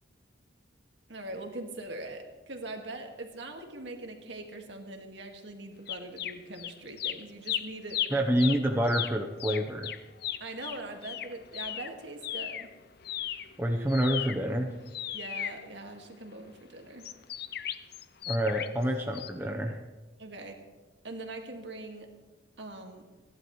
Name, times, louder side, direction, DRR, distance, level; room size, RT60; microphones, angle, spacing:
voice 1, 1.1-8.5 10.4-12.7 15.1-17.1 20.2-20.6 21.0-22.1 22.6-23.1, right 2 dB, 65° right, 3 dB, 1.9 m, -42 dB
sound 1, 5.9-6.7 7.0-12.7 13.0-16.3 17.0-18.8 19.1-19.3, left 11 dB, 55° left, 0.5 m, -36 dB
voice 2, 8.1-9.9 13.6-14.7 18.3-19.8, equal, 10° right, 1 dB, 0.8 m, -27 dB
29.0 x 11.0 x 3.2 m, 1.2 s
head